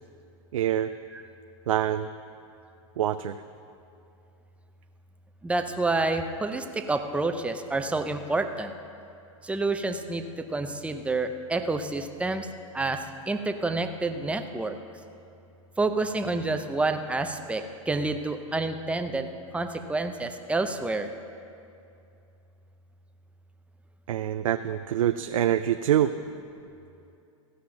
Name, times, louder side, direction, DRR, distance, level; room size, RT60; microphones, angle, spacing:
voice 1, 0.5-0.9 1.7-2.1 3.0-3.4 24.1-26.1, right 11 dB, 85° right, 9 dB, 0.4 m, -25 dB
voice 2, 5.4-8.7 9.4-12.5 12.7-14.7 15.8-19.3 19.5-21.1, right 3 dB, 5° right, 7 dB, 0.6 m, -28 dB
15.5 x 5.6 x 6.3 m, 2.6 s
hypercardioid pair, 110°, 17 cm